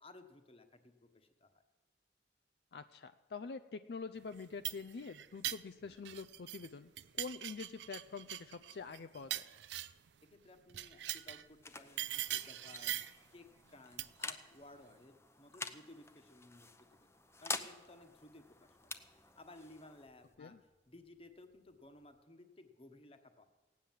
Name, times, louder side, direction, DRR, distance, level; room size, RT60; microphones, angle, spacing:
voice 1, 0.0-1.6 10.2-13.0 13.3-17.1 17.4-19.0 19.4-20.6 20.9-23.4, left 2 dB, 35° left, 7 dB, 1.2 m, -58 dB
voice 2, 2.7-6.9 7.2-9.4 20.4-20.6, left 4 dB, 65° left, 10 dB, 0.4 m, -46 dB
sound 1, 4.3-6.7 7.0-10.1 10.7-11.5 12.0-13.2 14.0-14.3, right 13 dB, 85° right, 0.5 m, -42 dB
sound 2, 10.9-22.2, left 3 dB, 15° left, 0.7 m, -49 dB
17.0 x 9.4 x 7.3 m, 1.3 s
head